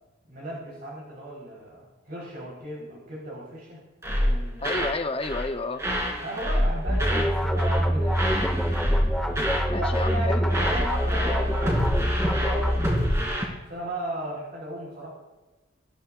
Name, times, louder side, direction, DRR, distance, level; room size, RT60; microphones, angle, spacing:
voice 1, 0.3-4.8 6.2-8.6 9.8-11.9 12.2-13.2 13.7-15.1, right 1 dB, 50° right, -5 dB, 4.0 m, -36 dB
sound 1, 4.0-5.0 5.2-5.5 5.8-7.3 7.6-7.9 8.1-9.7 9.9-10.2 10.5-13.4, equal, 15° right, 2.9 m, -27 dB
voice 2, 4.6-5.9 9.7-10.7, left 3 dB, 30° left, 8 dB, 0.7 m, -31 dB
sound 2, 6.9-13.0, equal, ahead, 1.0 m, -25 dB
24.0 x 13.5 x 2.4 m, 1.1 s
head